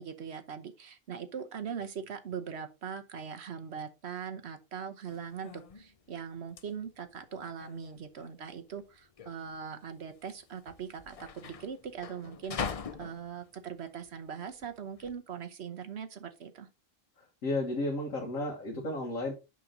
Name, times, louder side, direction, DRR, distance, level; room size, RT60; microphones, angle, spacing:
voice 1, 0.0-16.7, right 7 dB, 60° right, 1.1 m, -41 dB
sound 1, 5.1-15.1, left 6 dB, 70° left, 0.3 m, -43 dB
voice 2, 17.4-19.3, left 2 dB, 90° left, 1.9 m, -32 dB
6.2 x 6.0 x 3.8 m
omnidirectional pair, 1.3 m